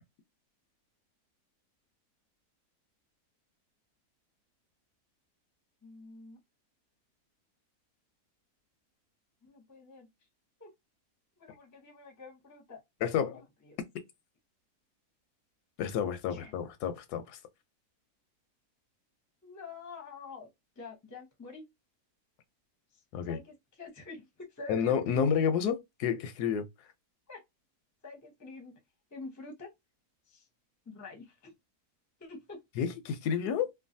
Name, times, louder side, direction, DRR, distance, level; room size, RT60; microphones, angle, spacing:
voice 1, 5.8-6.4 9.4-10.1 10.6-10.7 11.4-12.8 13.2-13.8 16.3-16.5 19.4-20.5 20.8-21.6 22.9-25.4 27.3-27.4 28.0-28.8 29.1-29.7 30.3-30.5 30.9-31.5 32.2-32.6, left 3 dB, 20° left, 0.5 m, -47 dB
voice 2, 13.0-13.4 15.8-17.4 23.1-23.4 24.7-26.7 32.8-33.7, left 7 dB, 90° left, 1.2 m, -30 dB
3.1 x 2.2 x 2.6 m
omnidirectional pair, 1.6 m